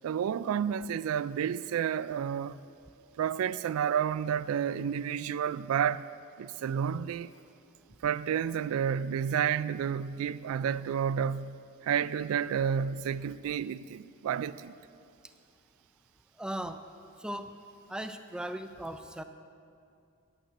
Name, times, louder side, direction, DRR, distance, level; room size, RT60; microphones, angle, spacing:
voice 1, 0.0-2.6 3.2-6.1 6.4-7.3 8.0-14.8, right 8 dB, 80° right, 0.3 m, -30 dB
voice 2, 16.4-16.8 17.2-17.5 17.9-19.2, right 1 dB, 5° right, 0.3 m, -37 dB
9.2 x 6.5 x 8.6 m
head